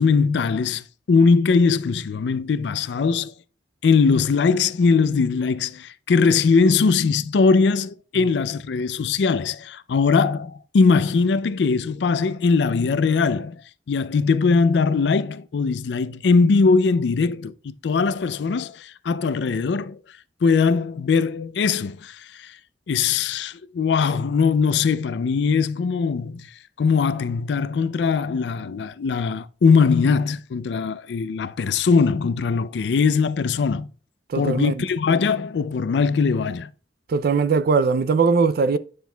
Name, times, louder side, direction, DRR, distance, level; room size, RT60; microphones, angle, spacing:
voice 1, 0.0-3.3 3.8-13.6 13.9-20.0 20.4-22.5 22.9-26.5 26.8-33.9 34.4-36.7, left 5 dB, 75° left, 0.4 m, -20 dB
voice 2, 34.3-34.8 37.1-38.8, right 4 dB, 55° right, 0.4 m, -20 dB
9.2 x 6.1 x 2.2 m
head